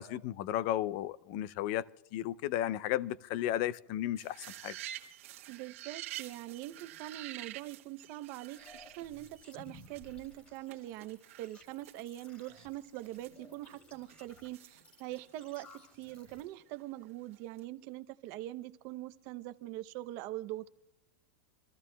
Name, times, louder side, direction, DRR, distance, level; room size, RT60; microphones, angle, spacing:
voice 1, 0.0-1.8 2.1-4.7, left 12 dB, 40° left, 0.4 m, -34 dB
sound 1, 4.2-10.3 10.7-10.8 11.0-12.2 12.5-12.6 13.0-15.5 16.1-17.0 17.3-17.6, right 13 dB, 75° right, 1.4 m, -48 dB
voice 2, 5.5-20.7, right 15 dB, 40° right, 0.6 m, -43 dB
sound 2, 8.6-16.4, left 1 dB, 20° left, 2.3 m, -58 dB
27.0 x 14.0 x 2.2 m
supercardioid pair, 165°, 7 cm